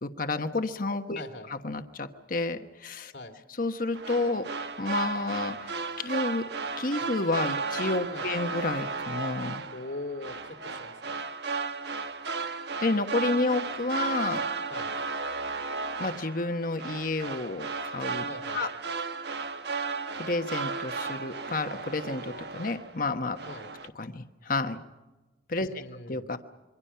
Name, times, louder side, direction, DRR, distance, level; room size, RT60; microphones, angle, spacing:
voice 1, 0.0-1.2 1.6-3.1 3.6-4.4 4.8-6.4 6.8-9.6 12.8-14.4 16.0-18.2 18.5-18.7 20.2-23.4 24.0-24.8 25.5-25.8 26.1-26.4, left 2 dB, 50° left, 7 dB, 1.2 m, -30 dB
voice 2, 1.2-1.5 3.1-3.4 8.1-8.3 9.7-11.2 14.7-14.9 18.3-18.6 23.5-23.7 25.6-26.3, left 2 dB, 75° left, 7 dB, 2.4 m, -41 dB
sound 1, 3.9-23.1 23.4-23.9, right 4 dB, 65° right, 1.2 m, -34 dB
27.0 x 24.0 x 5.7 m, 1.1 s
head